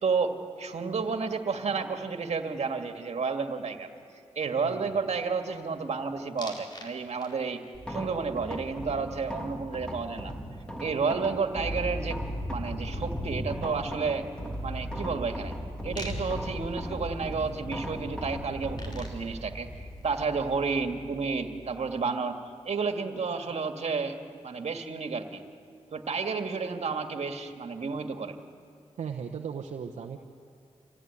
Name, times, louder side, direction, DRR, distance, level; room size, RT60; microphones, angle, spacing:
voice 1, 0.0-3.9 4.4-7.6 7.9-10.3 10.8-12.2 12.5-15.5 15.8-22.4 22.6-24.2 24.4-25.4 25.9-28.4, right 5 dB, 65° right, 5 dB, 2.1 m, -31 dB
voice 2, 4.6-5.0 29.0-30.2, right 7 dB, 80° right, 1 dB, 1.1 m, -37 dB
sound 1, 6.4-6.9 7.2-7.7 10.1-10.2 10.5-20.5, left 1 dB, 35° left, 4.6 m, -41 dB
sound 2, 7.7-22.0, equal, 10° left, 3.6 m, -38 dB
27.0 x 16.5 x 9.8 m, 2.4 s
cardioid pair, 55°, 12 cm